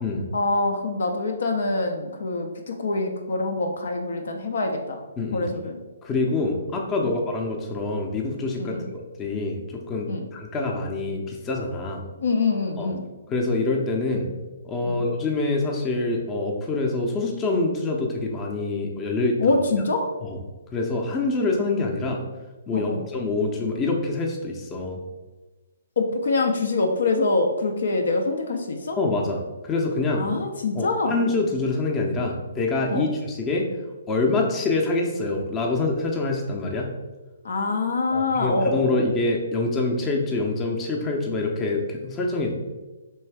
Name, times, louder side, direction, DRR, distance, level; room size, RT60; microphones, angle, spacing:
voice 1, 0.3-5.0 5.3-5.8 8.6-8.9 10.1-10.2 12.2-13.0 14.8-15.0 19.4-20.1 22.7-23.0 26.0-29.0 30.2-31.2 32.9-33.1 37.4-39.0, left 3 dB, 60° left, 3 dB, 0.5 m, -25 dB
voice 2, 5.2-5.5 6.0-8.8 9.2-12.0 12.8-12.9 13.3-14.3 14.6-19.6 20.2-20.4 20.7-22.2 22.7-25.0 29.0-30.2 30.7-33.6 34.1-36.9 38.1-42.5, left 3 dB, 20° left, 1 dB, 0.6 m, -25 dB
3.3 x 3.1 x 4.5 m, 1.2 s
figure-of-eight pair, 130°, 0 cm